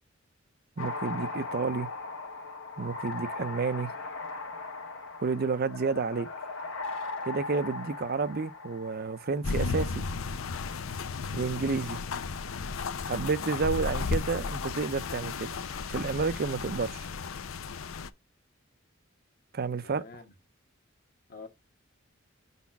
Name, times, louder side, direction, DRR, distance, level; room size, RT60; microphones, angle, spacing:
sound 1, 0.8-9.4, left 3 dB, 70° left, 1.4 m, -38 dB
voice 1, 0.8-1.9 2.8-3.9 5.2-6.3 7.3-10.0 11.3-12.0 13.1-15.5 15.9-17.1 19.5-20.0, right 4 dB, 50° right, 0.5 m, -30 dB
sound 2, 9.4-18.1, left 4 dB, 90° left, 0.6 m, -34 dB
voice 2, 11.3-12.1 19.8-20.3 21.3-21.5, left 3 dB, 45° left, 1.3 m, -49 dB
5.0 x 4.1 x 5.7 m
head